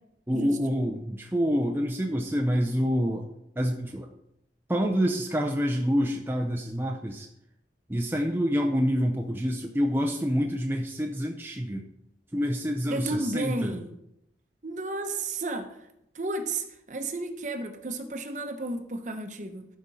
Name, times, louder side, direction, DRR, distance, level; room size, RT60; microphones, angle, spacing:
voice 1, 0.3-3.3 3.6-4.1 4.7-7.3 7.9-11.9 12.3-13.8, equal, 10° right, 2 dB, 0.5 m, -27 dB
voice 2, 12.9-13.9 14.6-15.8 16.1-19.7, right 2 dB, 45° right, 6 dB, 0.8 m, -32 dB
12.0 x 5.1 x 4.1 m, 0.80 s
head